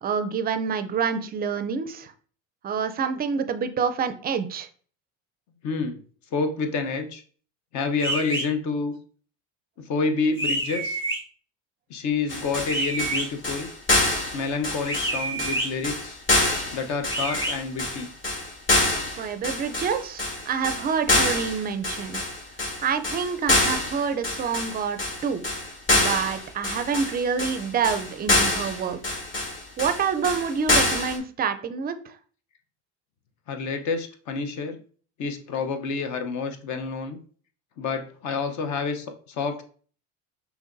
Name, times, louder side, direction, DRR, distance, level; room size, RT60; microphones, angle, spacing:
voice 1, 0.0-2.1 2.6-4.7 19.2-22.2 22.8-25.4 25.9-29.2 29.8-32.2, right 6 dB, 25° right, 10 dB, 0.4 m, -27 dB
voice 2, 5.6-6.0 6.3-7.2 7.7-8.9 9.9-11.0 11.9-13.7 14.3-16.2 16.7-18.1 33.5-34.8 35.2-37.2 37.8-39.6, left 4 dB, 55° left, 7 dB, 0.9 m, -28 dB
sound 1, 8.0-8.4 10.4-11.2 12.7-13.2 14.8-15.7 17.1-17.5, right 2 dB, 15° left, 1.7 m, -28 dB
sound 2, 12.3-31.2, left 2 dB, 35° left, 1.6 m, -26 dB
5.5 x 3.0 x 2.6 m, 0.44 s
supercardioid pair, 105°, 35 cm